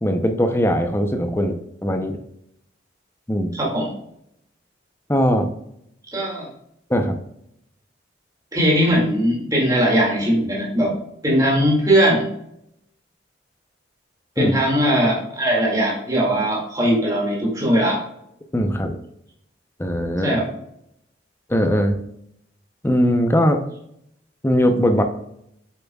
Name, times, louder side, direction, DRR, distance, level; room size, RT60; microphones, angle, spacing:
voice 1, 0.0-2.2 3.3-3.6 5.1-5.5 6.9-7.2 14.4-14.5 18.5-19.0 19.8-20.4 21.5-22.0 22.8-23.6 24.4-25.0, equal, 15° left, 6 dB, 0.6 m, -20 dB
voice 2, 3.5-3.9 6.1-6.5 8.5-10.9 11.2-12.3 14.4-18.0 20.2-20.5, equal, 20° right, -3 dB, 2.2 m, -19 dB
7.6 x 7.0 x 2.3 m, 0.76 s
head